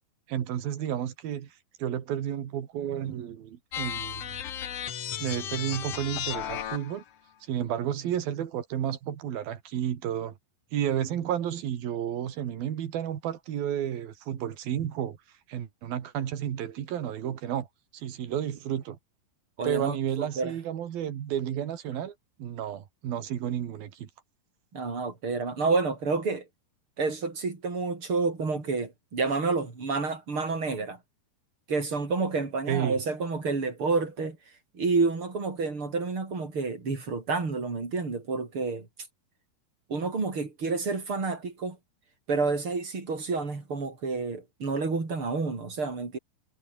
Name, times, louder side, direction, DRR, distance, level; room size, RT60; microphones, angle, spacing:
voice 1, 0.3-1.5 1.8-4.3 5.2-7.0 7.5-10.3 10.7-15.2 15.5-17.7 17.9-19.0 19.6-24.1 32.7-33.0, right 10 dB, 65° right, 3.8 m, -31 dB
sound 1, 3.7-7.0, left 10 dB, 55° left, 1.9 m, -34 dB
voice 2, 19.6-20.5 24.7-26.4 27.0-31.0 31.7-34.4 34.7-38.9 39.9-41.8 42.3-46.2, right 4 dB, 30° right, 5.5 m, -29 dB
omnidirectional pair, 4.6 m